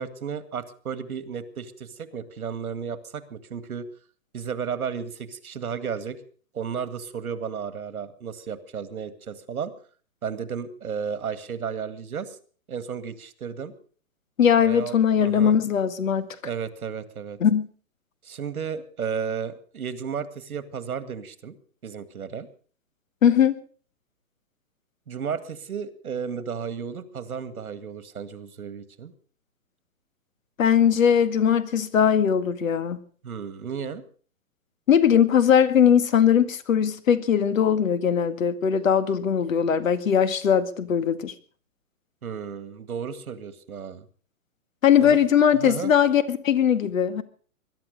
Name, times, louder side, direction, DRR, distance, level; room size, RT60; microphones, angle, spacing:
voice 1, 0.0-3.9 4.3-6.2 6.5-9.7 10.2-12.4 12.7-13.7 14.6-15.6 16.4-17.4 18.2-21.5 21.8-22.5 25.1-29.1 33.2-34.0 42.2-44.1 45.0-45.2 45.5-45.9, right 7 dB, 90° right, 2.1 m, -33 dB
voice 2, 14.4-16.3 17.4-17.7 23.2-23.6 30.6-33.0 34.9-41.3 44.8-47.2, left 8 dB, 65° left, 2.0 m, -20 dB
21.0 x 12.0 x 5.2 m
hypercardioid pair, 160°, 42 cm